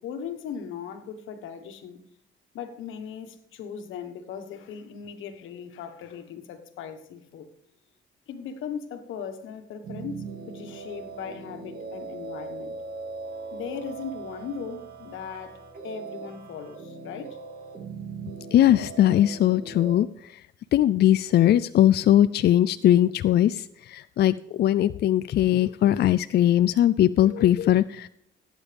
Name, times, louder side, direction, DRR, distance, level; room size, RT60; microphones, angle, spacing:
voice 1, 0.0-2.0 2.5-7.5 8.3-12.8 13.5-17.4, left 7 dB, 85° left, 1.4 m, -38 dB
sound 1, 9.8-19.9, right 4 dB, 50° right, 2.5 m, -40 dB
voice 2, 18.5-20.1 20.7-28.1, left 12 dB, 55° left, 0.4 m, -20 dB
16.5 x 9.0 x 3.5 m
cardioid pair, 90°, 20 cm